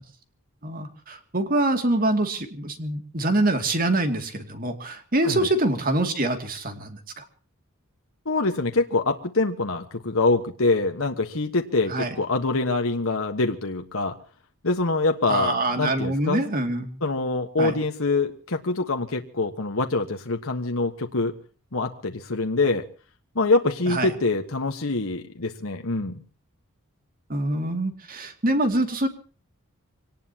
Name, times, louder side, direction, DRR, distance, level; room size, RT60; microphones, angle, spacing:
voice 1, 0.6-7.2 11.9-12.1 15.3-17.0 17.6-17.8 23.9-24.1 27.3-29.1, right 2 dB, 40° right, 6 dB, 2.5 m, -25 dB
voice 2, 8.2-14.2 14.6-16.4 17.0-21.3 21.7-22.8 23.3-26.2, left 3 dB, 70° left, 4 dB, 1.4 m, -25 dB
25.0 x 19.0 x 2.9 m, 0.40 s
head